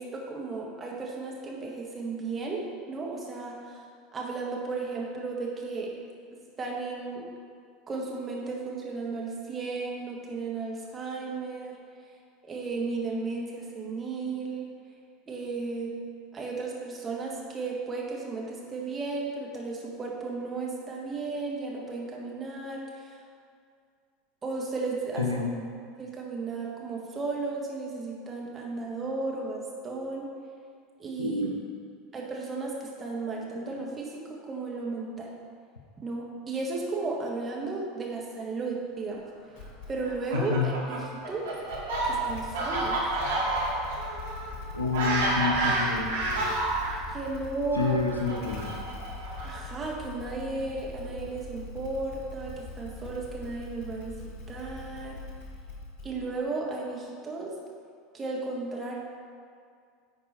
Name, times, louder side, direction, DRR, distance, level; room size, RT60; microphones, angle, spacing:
voice 1, 0.0-2.6 2.9-3.8 4.1-5.9 6.3-7.2 7.9-11.8 12.4-14.7 15.3-15.9 16.3-23.2 24.4-25.3 26.0-30.3 31.0-31.4 32.1-35.3 36.0-39.2 39.9-41.5 42.1-43.0 47.1-48.0 49.4-54.1 54.5-55.2 56.0-57.5 58.1-59.0, right 3 dB, 25° right, -2 dB, 1.7 m, -34 dB
voice 2, 25.2-25.5 31.2-31.5 40.3-40.7 44.7-46.1 47.7-48.7, left 4 dB, 85° left, 1 dB, 0.8 m, -28 dB
Motorcycle / Engine starting, 39.6-40.2 41.6-56.5, left 3 dB, 50° left, 1.1 m, -42 dB
Fowl, 40.0-46.9 47.7-49.8, right 2 dB, 70° right, 1.7 m, -29 dB
9.6 x 4.6 x 4.4 m, 2.2 s
figure-of-eight pair, 75°, 0 cm